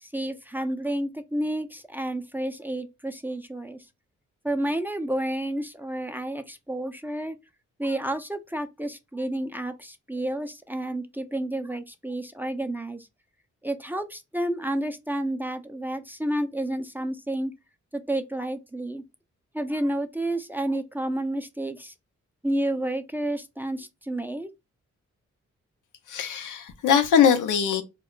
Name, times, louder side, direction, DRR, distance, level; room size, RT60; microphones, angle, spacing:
voice 1, 0.0-3.8 4.4-7.4 7.8-13.1 13.6-17.5 17.9-19.0 19.5-21.9 22.4-24.5, right 1 dB, 5° right, 0.4 m, -30 dB
voice 2, 26.1-27.8, left 8 dB, 85° left, 0.6 m, -21 dB
2.2 x 2.0 x 3.7 m
cardioid pair, 55°, 30 cm